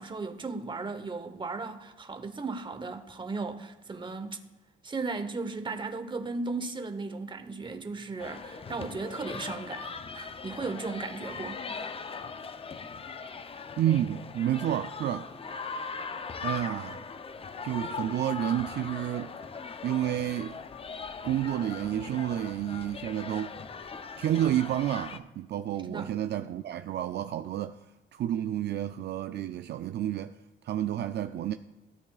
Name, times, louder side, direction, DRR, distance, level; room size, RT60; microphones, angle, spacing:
voice 1, 0.0-4.4 4.8-11.6 25.8-26.1, right 3 dB, 25° right, 1.0 m, -36 dB
sound 1, 8.2-25.2, left 5 dB, 30° left, 0.5 m, -40 dB
voice 2, 13.8-15.3 16.4-17.0 17.6-19.3 19.8-20.6 21.2-23.5 24.2-27.8 28.1-30.3 30.6-31.5, right 11 dB, 60° right, 0.4 m, -30 dB
16.5 x 8.3 x 2.4 m
cardioid pair, 90°, 20 cm